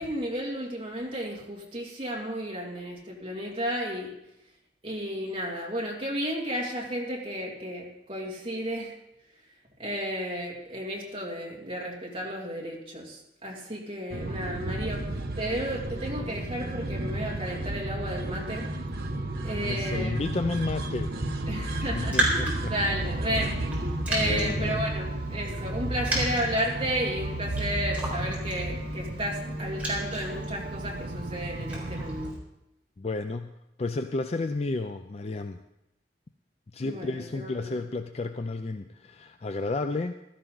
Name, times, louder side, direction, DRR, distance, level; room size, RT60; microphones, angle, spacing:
voice 1, 0.0-4.1 4.8-8.9 9.8-15.0 15.4-18.7 19.4-20.2 21.5-23.5 24.1-32.3 36.8-37.8, equal, 30° right, -2 dB, 2.5 m, -33 dB
sound 1, 14.1-32.3, right 1 dB, 60° right, 1.1 m, -33 dB
voice 2, 19.6-22.7 23.9-24.8 33.0-33.5 33.8-35.6 36.7-40.1, left 3 dB, 35° left, 8 dB, 0.4 m, -32 dB
Raindrop, 21.7-32.4, right 1 dB, 10° right, 4.3 m, -35 dB
15.5 x 13.0 x 3.9 m, 0.88 s
head